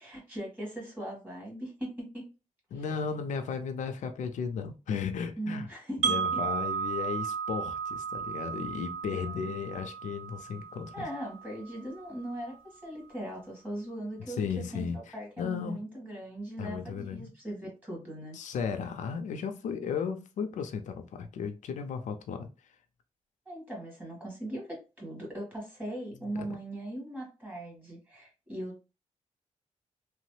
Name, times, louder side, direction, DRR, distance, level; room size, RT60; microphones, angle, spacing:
voice 1, 0.0-2.3 2.7-2.8 5.4-6.4 9.1-9.5 10.9-18.4 23.4-28.8, right 1 dB, 15° right, 1.6 m, -39 dB
voice 2, 2.7-5.7 6.1-11.1 14.3-15.8 16.6-17.3 18.3-22.7 26.3-26.6, left 6 dB, 80° left, 0.4 m, -35 dB
Wind chime, 6.0-12.0, right 7 dB, 65° right, 0.5 m, -34 dB
3.0 x 2.0 x 3.1 m
wide cardioid pair, 135°, 13 cm